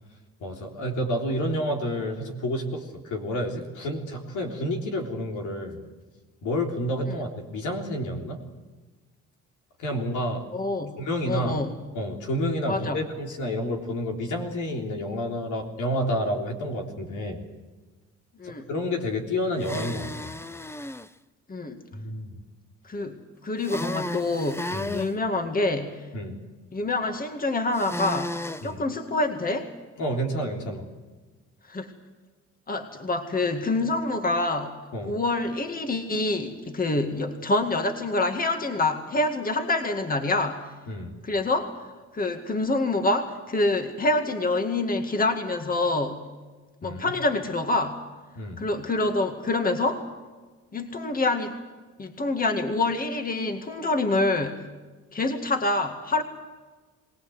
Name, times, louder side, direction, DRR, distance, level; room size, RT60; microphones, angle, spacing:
voice 1, 0.4-5.8 6.4-8.4 9.8-10.4 11.0-11.6 11.9-17.5 18.4-20.3 21.9-22.4 24.7-25.0 26.1-26.4 28.6-28.8 30.0-30.8 34.9-35.1 40.9-41.1 46.8-47.0 48.4-48.6, equal, 80° left, 2 dB, 3.7 m, -29 dB
voice 2, 10.5-11.0 11.2-11.7 12.7-13.0 18.4-18.7 21.5-21.8 22.8-26.1 26.7-28.3 28.6-29.7 31.7-31.9 32.7-34.8 35.0-40.7 41.2-41.7 42.1-46.2 46.8-48.0 48.6-50.1 50.7-51.5 52.0-54.6 55.1-56.2, left 2 dB, 30° left, 6 dB, 2.1 m, -26 dB
sound 1, 19.6-21.1 23.6-25.1 27.7-28.7, left 1 dB, 10° left, 0.6 m, -34 dB
22.5 x 18.5 x 8.0 m, 1.3 s
cardioid pair, 90°, 30 cm